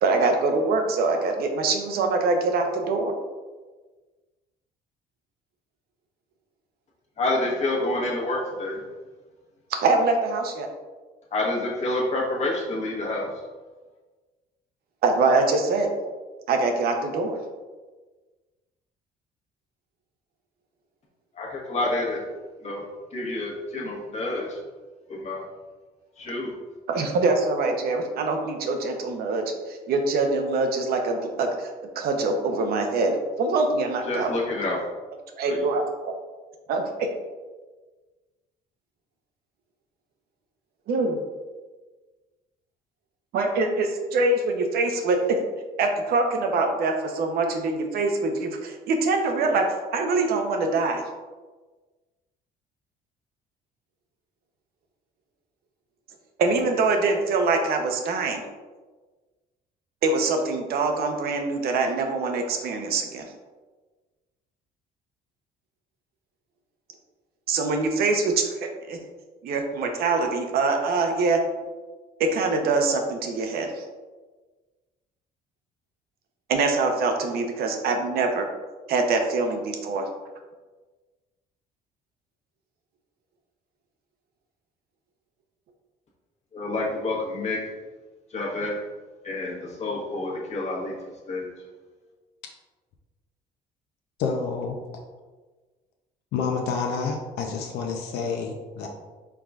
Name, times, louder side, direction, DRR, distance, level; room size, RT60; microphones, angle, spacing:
voice 1, 0.0-3.1 9.7-10.7 15.0-15.9 16.5-17.4 26.9-31.7 32.0-34.3 35.4-36.1 36.7-37.1 40.9-41.2 43.3-45.4 45.8-51.0 56.4-58.4 60.0-63.3 67.5-69.0 69.4-71.4 72.2-73.8 76.5-78.5 78.9-80.0, right 3 dB, 65° right, 4 dB, 0.7 m, -24 dB
voice 2, 7.2-8.8 11.3-13.3 21.3-22.3 22.6-22.8 23.1-24.6 25.1-25.4 26.2-26.5 34.1-34.8 35.5-35.6 86.5-87.6 88.3-88.8 89.2-90.9 91.3-91.5, left 2 dB, 40° left, -2 dB, 1.2 m, -28 dB
voice 3, 94.2-94.8 96.3-98.9, left 5 dB, 80° left, 2 dB, 0.6 m, -28 dB
4.7 x 3.8 x 2.4 m, 1.3 s
cardioid pair, 110°, 17 cm